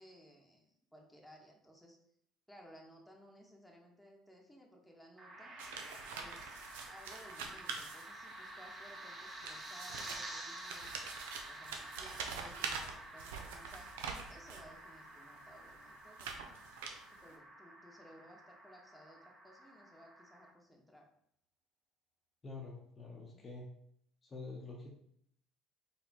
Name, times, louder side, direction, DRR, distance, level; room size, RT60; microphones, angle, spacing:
voice 1, 0.0-2.0 2.5-5.5 6.1-11.0 11.5-14.0 14.3-16.6 17.1-21.1 23.3-23.4, equal, ahead, 0 dB, 1.1 m, -59 dB
sound 1, 5.2-20.5, right 1 dB, 25° right, 1.1 m, -50 dB
Gong, 5.3-13.3, right 2 dB, 45° right, 1.3 m, -60 dB
sound 2, 5.6-8.5 9.2-14.7 15.4-17.3, right 5 dB, 80° right, 0.5 m, -45 dB
voice 2, 22.4-23.7 24.2-24.9, left 3 dB, 35° left, 0 dB, 0.7 m, -47 dB
4.2 x 3.4 x 2.9 m, 0.69 s
hypercardioid pair, 65°, 0 cm